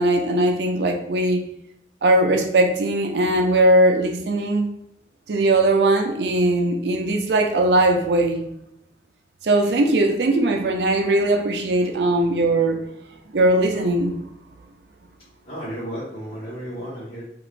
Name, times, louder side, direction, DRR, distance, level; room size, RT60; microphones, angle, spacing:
voice 1, 0.0-1.4 2.0-4.7 5.3-8.4 9.4-12.8 13.3-14.2, right 1 dB, 70° right, 4 dB, 0.5 m, -19 dB
voice 2, 15.4-17.3, equal, 35° left, -13 dB, 1.2 m, -33 dB
2.9 x 2.5 x 3.2 m, 0.79 s
head